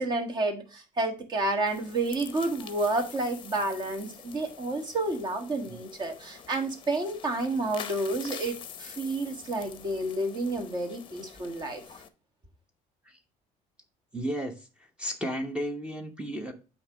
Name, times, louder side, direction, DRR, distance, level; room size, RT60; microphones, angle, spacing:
voice 1, 0.0-11.8, right 2 dB, 30° right, 1.5 m, -30 dB
sound 1, 1.7-12.1, left 8 dB, 35° left, 0.7 m, -46 dB
voice 2, 14.1-14.5 15.0-16.5, equal, 5° right, 0.9 m, -33 dB
8.4 x 2.9 x 6.1 m
cardioid pair, 150°, 14 cm